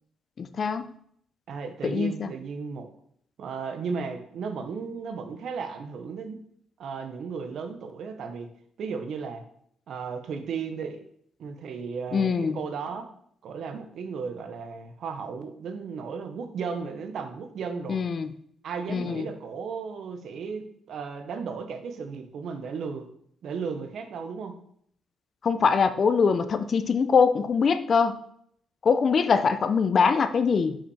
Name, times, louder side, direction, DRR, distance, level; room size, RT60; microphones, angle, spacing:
voice 1, 0.4-0.9 1.8-2.3 12.1-12.6 17.9-18.3 18.9-19.3 25.4-28.2 28.8-30.8, left 5 dB, 45° left, 11 dB, 0.6 m, -23 dB
voice 2, 1.5-2.9 3.4-6.4 6.8-8.5 8.8-9.4 9.9-11.0 11.4-13.1 13.4-18.0 18.6-23.1 23.4-24.6, right 5 dB, 65° right, 7 dB, 1.0 m, -35 dB
5.7 x 5.0 x 4.9 m, 0.67 s
cardioid pair, 90°, 0 cm